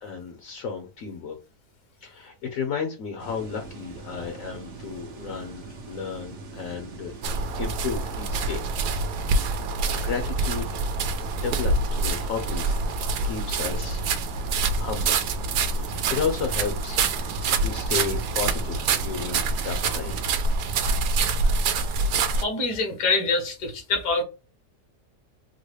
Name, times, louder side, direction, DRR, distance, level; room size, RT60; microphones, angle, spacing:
voice 1, 0.0-1.4 2.0-8.7 10.0-10.7 11.0-14.1 14.8-15.3 15.7-20.6, left 6 dB, 65° left, 1.0 m, -33 dB
sound 1, 3.2-20.3, right 3 dB, 55° right, 0.9 m, -40 dB
sound 2, 7.2-22.4, right 3 dB, 80° right, 1.1 m, -26 dB
voice 2, 22.3-24.2, left 3 dB, 85° left, 1.6 m, -25 dB
3.8 x 2.1 x 3.2 m
omnidirectional pair, 1.7 m